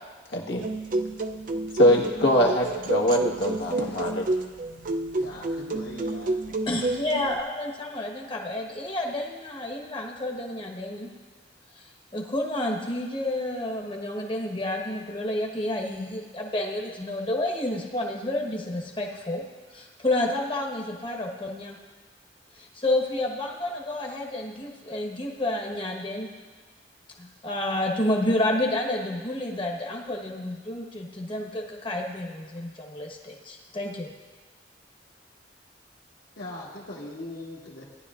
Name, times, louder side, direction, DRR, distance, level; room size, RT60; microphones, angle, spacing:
voice 1, 0.3-0.7 1.7-4.3, equal, 80° left, -1 dB, 1.5 m, -22 dB
sound 1, 0.6-7.4, right 2 dB, 45° right, 0.5 m, -30 dB
voice 2, 5.1-6.4 36.3-37.9, left 1 dB, 60° left, -9 dB, 1.6 m, -40 dB
voice 3, 6.7-11.1 11.8-11.9 12.1-19.4 19.7-21.8 22.5-26.3 27.2-34.1, left 1 dB, 30° left, 1 dB, 1.2 m, -30 dB
18.0 x 10.5 x 2.5 m, 1.4 s
head